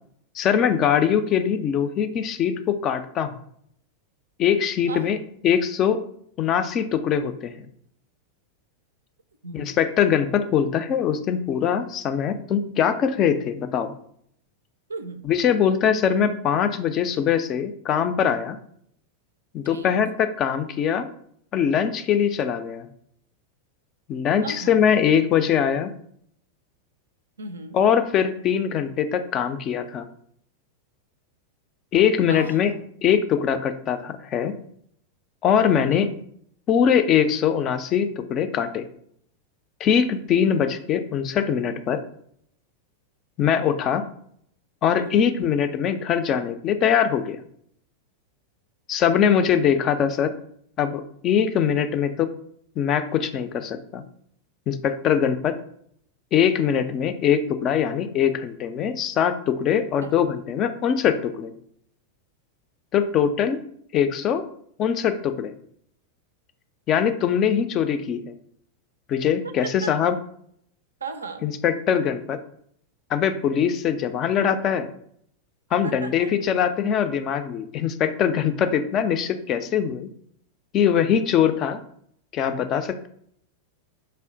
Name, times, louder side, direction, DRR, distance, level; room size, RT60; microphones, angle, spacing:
voice 1, 0.4-3.3 4.4-5.2 5.4-6.0 6.4-7.5 9.5-13.9 15.2-18.6 19.5-21.1 21.5-22.9 24.1-25.9 27.7-30.1 31.9-32.7 33.0-34.5 35.4-36.1 36.7-38.9 39.8-42.0 43.4-44.0 44.8-47.4 48.9-50.3 50.8-52.3 52.8-54.0 54.7-55.5 56.3-61.5 62.9-63.6 63.9-64.4 64.8-65.5 66.9-68.3 69.1-70.2 71.4-72.4 73.1-74.9 75.7-80.1 80.7-81.8 82.3-83.1, left 8 dB, 35° left, 8 dB, 0.3 m, -22 dB
voice 2, 4.9-5.2 9.4-9.7 14.9-15.2 19.6-19.9 24.4-24.8 27.4-27.8 32.3-32.8 35.9-36.1 45.0-45.4 60.0-60.1 69.4-69.9 71.0-71.5 75.8-76.3, right 3 dB, 70° right, 10 dB, 0.4 m, -36 dB
4.3 x 2.1 x 3.7 m, 0.67 s
figure-of-eight pair, 90°, 0 cm